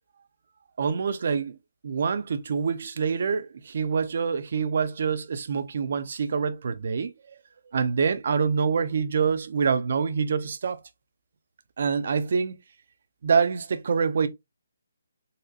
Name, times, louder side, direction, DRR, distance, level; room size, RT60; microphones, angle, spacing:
voice 1, 0.8-1.6 1.8-7.1 7.7-10.8 11.8-12.6 13.2-14.3, right 6 dB, 50° right, 0.5 m, -26 dB
4.0 x 2.5 x 2.7 m
hypercardioid pair, 165°, 0 cm